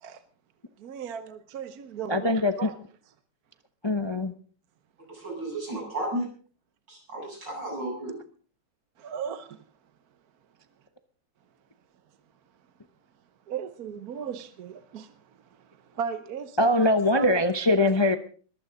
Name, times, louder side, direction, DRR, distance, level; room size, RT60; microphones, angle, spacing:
voice 1, 0.8-2.7 9.0-9.6 13.5-15.1 15.9-17.4, right 8 dB, 60° right, 1.3 m, -36 dB
voice 2, 2.1-2.7 3.8-4.3 16.6-18.2, left 1 dB, 25° left, 0.5 m, -22 dB
voice 3, 5.1-6.3 6.9-8.2, right 1 dB, 85° right, 8.9 m, -33 dB
21.0 x 15.0 x 3.8 m
omnidirectional pair, 1.9 m